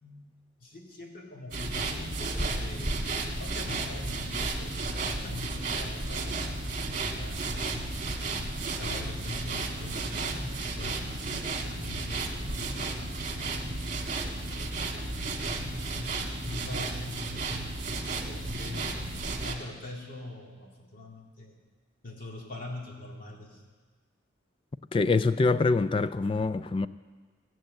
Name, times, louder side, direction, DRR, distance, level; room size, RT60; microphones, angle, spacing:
voice 1, 0.6-7.5 8.8-17.7 18.2-21.6 22.0-23.6, left 2 dB, 50° left, 2.2 m, -44 dB
sound 1, 1.5-19.5, right 2 dB, 45° right, 1.7 m, -33 dB
voice 2, 24.9-26.9, left 3 dB, 30° left, 0.3 m, -25 dB
16.5 x 7.7 x 7.6 m
head